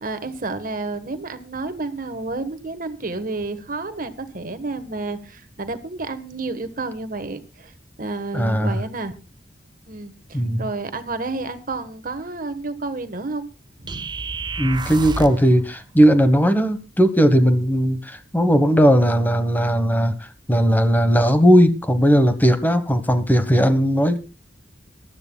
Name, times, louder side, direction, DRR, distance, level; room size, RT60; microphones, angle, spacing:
voice 1, 0.0-7.7 8.0-9.2 9.9-13.5 13.8-14.1, right 3 dB, 45° right, 10 dB, 1.3 m, -30 dB
voice 2, 8.3-8.8 10.3-10.6 14.6-20.1 20.5-24.2, equal, 10° left, 10 dB, 1.2 m, -17 dB
sound 1, 13.9-15.5, right 3 dB, 25° right, 0.7 m, -30 dB
22.5 x 12.5 x 2.3 m, 0.30 s
head